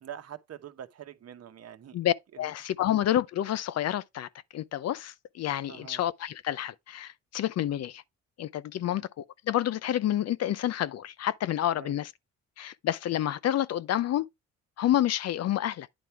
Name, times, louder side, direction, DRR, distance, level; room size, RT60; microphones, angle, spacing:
voice 1, 0.0-2.0 2.8-2.9 5.7-6.0 8.8-9.0 11.8-12.0, right 9 dB, 55° right, 1.0 m, -45 dB
voice 2, 1.9-8.0 8.4-12.1 12.6-14.3 14.8-15.9, left 12 dB, 60° left, 0.5 m, -29 dB
9.5 x 3.5 x 4.4 m
cardioid pair, 90°, 30 cm